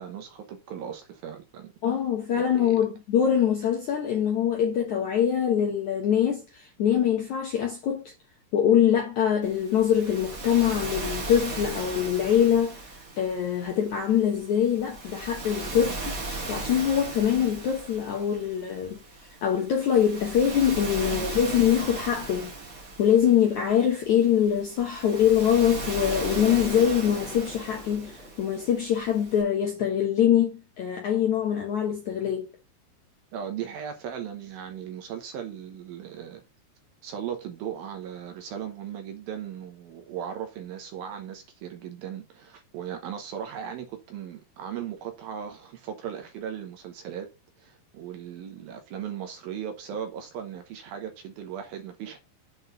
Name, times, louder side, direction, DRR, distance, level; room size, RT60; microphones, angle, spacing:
voice 1, 0.0-1.7 2.3-2.8 15.9-16.0 21.1-21.3 33.3-36.4 37.0-47.3 47.6-52.2, right 9 dB, 70° right, 2.5 m, -37 dB
voice 2, 1.8-8.1 8.5-16.1 16.5-19.0 19.4-22.5 23.0-32.5, left 9 dB, 70° left, 1.8 m, -24 dB
Waves surf, 9.4-29.4, right 2 dB, 35° right, 1.3 m, -37 dB
sound 1, 26.1-28.9, left 2 dB, 25° left, 1.8 m, -41 dB
8.0 x 3.8 x 6.6 m
omnidirectional pair, 4.9 m